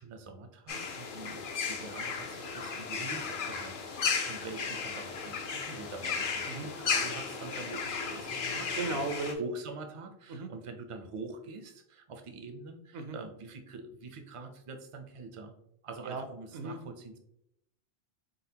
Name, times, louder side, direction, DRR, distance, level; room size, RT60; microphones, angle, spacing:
voice 1, 0.0-9.0 9.4-15.5 15.8-17.2, right 3 dB, 45° right, 7 dB, 0.4 m, -45 dB
sound 1, 0.7-9.3, left 5 dB, 60° left, 0.7 m, -35 dB
voice 2, 8.8-9.4 10.3-10.5 12.9-13.2 16.0-16.2 16.5-16.8, right 3 dB, 70° right, 8 dB, 0.8 m, -35 dB
4.1 x 4.0 x 2.8 m, 0.78 s
omnidirectional pair, 1.1 m